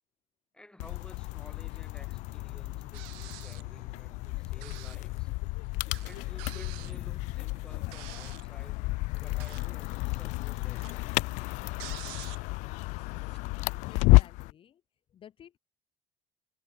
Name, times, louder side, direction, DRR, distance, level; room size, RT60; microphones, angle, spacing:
voice 1, 0.5-5.3 6.0-8.9 9.2-11.4, left 1 dB, 5° left, 4.0 m, -54 dB
sound 1, 0.8-14.5, left 24 dB, 70° left, 0.4 m, -31 dB
sound 2, 2.9-3.8 4.6-5.1 5.4-5.5 5.9-8.5 9.2-9.9 10.1-12.6 13.0-13.4, right 40 dB or more, 80° right, 0.7 m, -47 dB
sound 3, 3.5-9.6, right 14 dB, 60° right, 4.6 m, -60 dB
voice 2, 6.7-7.5 13.8-14.8 15.1-15.6, left 9 dB, 45° left, 1.0 m, -49 dB
supercardioid pair, 80°, 13 cm